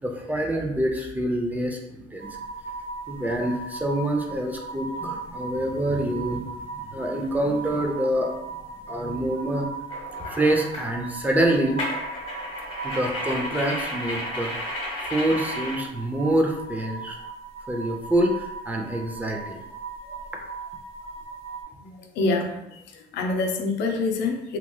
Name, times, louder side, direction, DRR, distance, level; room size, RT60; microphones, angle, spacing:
voice 1, 0.0-2.3 3.1-6.5 6.7-8.4 8.9-9.7 10.3-11.8 12.8-14.7 15.0-17.2 17.7-19.6, right 1 dB, 10° right, 1 dB, 0.5 m, -26 dB
sound 1, 2.2-21.6, right 3 dB, 60° right, 1.1 m, -38 dB
sound 2, 9.9-10.9 11.8-15.8, left 1 dB, 30° left, 1.1 m, -33 dB
voice 2, 21.8-22.6 22.9-24.6, left 3 dB, 85° left, 3 dB, 0.5 m, -26 dB
2.9 x 2.8 x 2.2 m, 0.88 s
cardioid pair, 110°, 17 cm